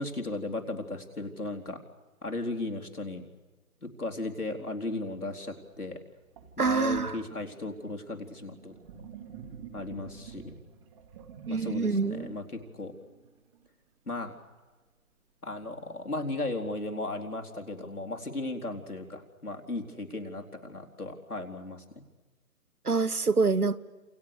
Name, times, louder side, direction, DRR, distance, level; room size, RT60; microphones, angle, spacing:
voice 1, 0.0-1.8 2.2-3.2 3.8-6.0 6.6-8.7 9.7-10.5 11.5-12.9 14.1-14.3 15.4-22.0, left 2 dB, 90° left, 2 dB, 4.2 m, -36 dB
Sink (filling or washing), 5.7-5.8 6.4-13.7, right 7 dB, 20° right, 2.3 m, -47 dB
voice 2, 6.6-7.2 11.5-12.3 22.8-23.8, right 4 dB, 90° right, 18 dB, 1.5 m, -26 dB
29.0 x 28.0 x 6.8 m, 1.2 s
figure-of-eight pair, 150°, 44 cm